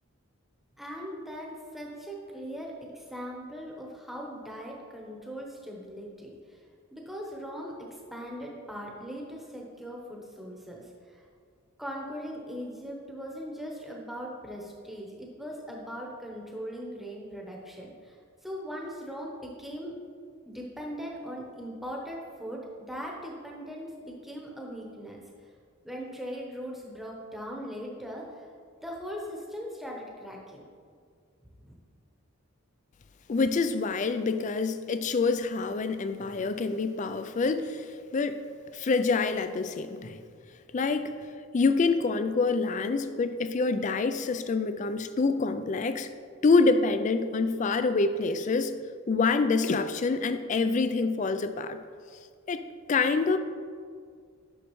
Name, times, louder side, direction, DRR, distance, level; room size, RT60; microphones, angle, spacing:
voice 1, 0.8-6.6 6.9-7.7 8.1-10.8 11.8-18.2 18.4-20.0 20.5-22.6 22.9-25.2 25.8-28.5 28.8-30.6 31.6-31.7, equal, ahead, -2 dB, 0.9 m, -39 dB
voice 2, 33.3-37.8 38.1-38.4 38.7-40.2 40.7-41.1 41.5-46.1 46.4-48.8 49.1-51.8 52.5-52.6 52.9-53.4, left 4 dB, 35° left, 10 dB, 0.3 m, -26 dB
9.7 x 6.3 x 3.1 m, 2.1 s
head